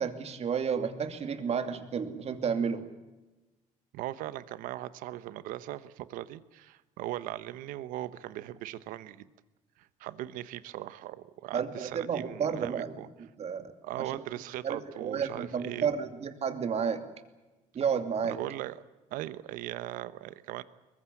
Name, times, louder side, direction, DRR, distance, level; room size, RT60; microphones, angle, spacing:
voice 1, 0.0-2.8 11.5-12.9 13.4-13.7 14.0-14.1 14.6-17.0 17.7-18.4, right 6 dB, 50° right, 8 dB, 2.7 m, -31 dB
voice 2, 3.9-9.3 9.8-13.1 13.8-15.9 18.2-18.8 19.1-20.6, right 14 dB, 85° right, 15 dB, 1.1 m, -39 dB
22.5 x 21.0 x 8.6 m, 1.1 s
cardioid pair, 85°, 14 cm